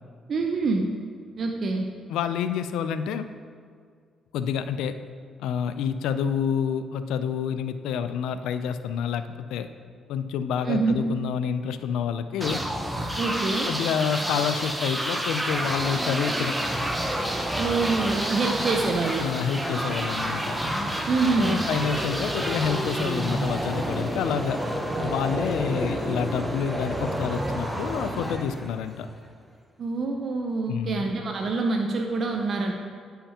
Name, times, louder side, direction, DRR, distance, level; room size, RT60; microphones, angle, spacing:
voice 1, 0.3-0.9 1.4-1.8 10.7-11.0 13.2-13.7 17.6-19.3 21.1-21.6 29.8-32.7, right 3 dB, 50° right, 2 dB, 0.6 m, -25 dB
voice 2, 2.1-3.3 4.3-4.9 5.4-9.7 10.1-12.6 13.7-16.6 19.2-20.6 21.4-24.6 25.0-29.1 30.7-31.1, left 7 dB, 90° left, 10 dB, 0.3 m, -28 dB
sound 1, 12.4-29.1, equal, 10° right, 0.8 m, -29 dB
9.6 x 5.6 x 2.8 m, 2.1 s
cardioid pair, 90°, 0 cm